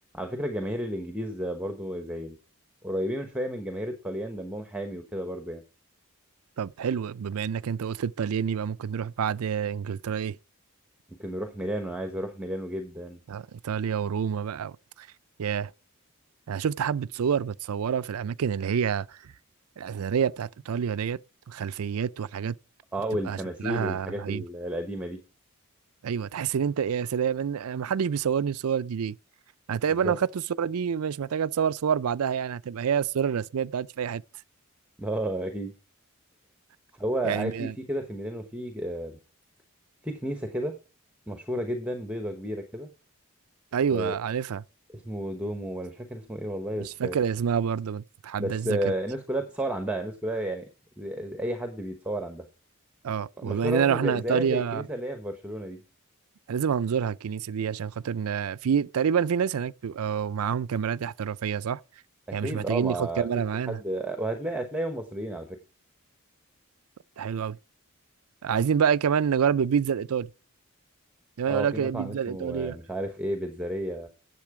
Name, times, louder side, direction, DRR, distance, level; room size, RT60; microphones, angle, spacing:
voice 1, 0.1-2.4 2.8-5.6 11.2-13.2 22.9-25.2 30.0-30.1 35.0-35.7 36.9-39.2 40.0-40.7 41.3-42.9 43.9-44.2 44.9-47.2 48.4-50.7 51.0-52.5 53.4-55.8 62.3-63.3 63.7-65.6 71.5-74.1, right 1 dB, 5° right, 1.0 m, -32 dB
voice 2, 6.6-10.4 13.3-15.1 15.4-15.7 16.5-19.2 19.8-21.2 21.5-22.5 23.2-23.4 23.6-24.4 26.0-29.1 29.7-34.2 37.2-37.7 43.7-44.6 46.8-48.9 53.0-54.9 56.5-61.8 62.3-63.8 67.2-67.6 68.4-70.3 71.4-72.8, right 7 dB, 80° right, 0.4 m, -27 dB
10.5 x 7.6 x 4.8 m
head